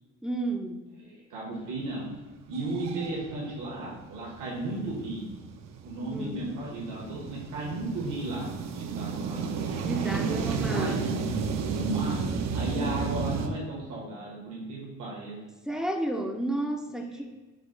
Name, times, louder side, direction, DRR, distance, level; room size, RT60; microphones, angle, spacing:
voice 1, 0.2-0.8 6.1-6.5 9.8-11.0 12.7-13.0 15.7-17.2, right 1 dB, ahead, 3 dB, 0.4 m, -32 dB
voice 2, 1.0-2.1 2.5-5.3 5.8-9.8 10.1-11.0 11.7-12.2 12.5-15.4 17.1-17.2, right 2 dB, 80° right, -5 dB, 1.4 m, -35 dB
sound 1, 1.9-2.0 2.4-13.5, right 5 dB, 65° right, 0.5 m, -33 dB
5.0 x 2.3 x 3.7 m, 1.2 s
cardioid pair, 90°, 30 cm